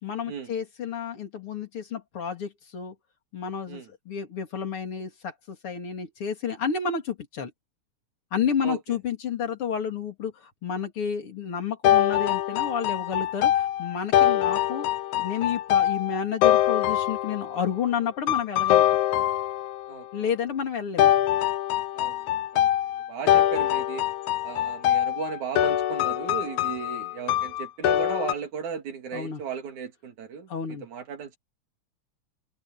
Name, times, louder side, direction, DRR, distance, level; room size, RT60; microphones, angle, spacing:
voice 1, 0.0-3.0 3.3-7.5 8.3-14.9 15.1-18.9 20.1-21.3 29.1-29.4 30.5-30.9, left 7 dB, 50° left, 3.7 m, -30 dB
sound 1, 11.8-17.6 18.3-19.9 21.0-28.3, left 12 dB, 80° left, 2.5 m, -23 dB
voice 2, 21.9-22.7 23.1-24.1 24.4-31.4, right 6 dB, 80° right, 4.0 m, -36 dB
omnidirectional pair, 3.3 m